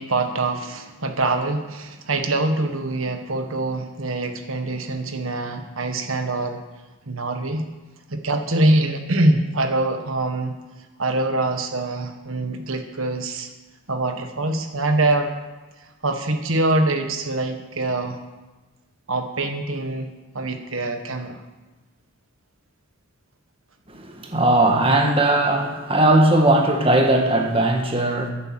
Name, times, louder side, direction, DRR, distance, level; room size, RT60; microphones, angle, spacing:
voice 1, 0.0-6.6 7.1-7.7 8.1-10.5 11.0-13.5 13.9-15.3 16.0-18.2 19.1-20.1 20.3-21.4, right 2 dB, 80° right, 6 dB, 1.5 m, -24 dB
voice 2, 23.9-28.3, right 1 dB, 25° right, 2 dB, 1.6 m, -18 dB
10.5 x 10.5 x 7.7 m, 1.2 s
head